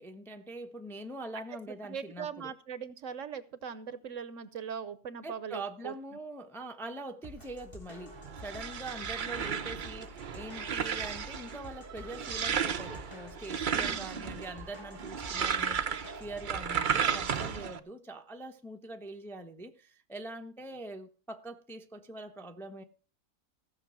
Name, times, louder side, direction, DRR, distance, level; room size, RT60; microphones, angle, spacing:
voice 1, 0.0-2.5 5.2-22.8, right 2 dB, ahead, 0.6 m, -43 dB
voice 2, 1.7-6.0 13.7-14.3, right 7 dB, 65° right, 1.1 m, -41 dB
sound 1, 7.2-17.6, left 1 dB, 20° left, 1.4 m, -49 dB
sound 2, 8.1-17.8, right 7 dB, 45° right, 0.6 m, -34 dB
15.5 x 6.4 x 6.1 m
omnidirectional pair, 1.5 m